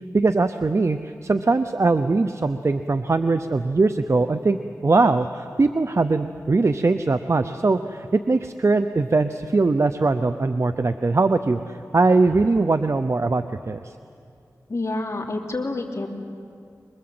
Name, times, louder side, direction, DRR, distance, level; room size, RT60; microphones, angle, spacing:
voice 1, 0.1-13.9, right 3 dB, 50° right, 10 dB, 0.7 m, -21 dB
voice 2, 14.7-16.1, left 2 dB, 50° left, 0 dB, 3.2 m, -28 dB
24.0 x 22.0 x 7.8 m, 2.4 s
wide cardioid pair, 60°, 6 cm